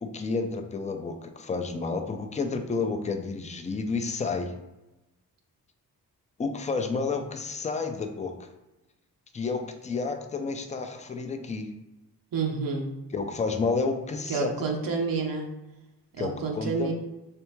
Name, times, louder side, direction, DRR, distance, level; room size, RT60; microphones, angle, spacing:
voice 1, 0.0-4.5 6.4-8.5 9.3-11.7 13.1-14.5 16.2-16.9, left 4 dB, 20° left, 6 dB, 0.4 m, -30 dB
voice 2, 12.3-12.9 14.3-15.5 16.2-16.9, right 5 dB, 65° right, 0 dB, 0.7 m, -29 dB
3.4 x 3.3 x 3.0 m, 0.99 s
cardioid pair, 105°, 37 cm